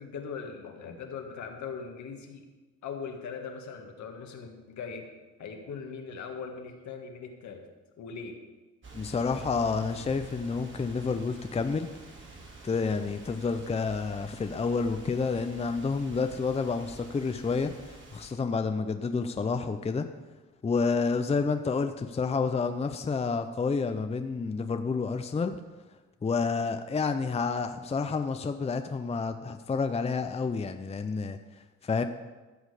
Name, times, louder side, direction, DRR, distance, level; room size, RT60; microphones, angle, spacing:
voice 1, 0.0-2.5 2.8-5.1 5.4-7.7 8.0-8.4, left 5 dB, 70° left, 4 dB, 1.6 m, -40 dB
sound 1, 8.8-18.3, right 3 dB, 40° right, 2.3 m, -48 dB
voice 2, 8.9-11.9 12.6-20.1 20.6-25.6 26.2-31.4 31.8-32.0, left 4 dB, 20° left, 8 dB, 0.6 m, -29 dB
14.0 x 6.4 x 4.9 m, 1.2 s
cardioid pair, 90°, 30 cm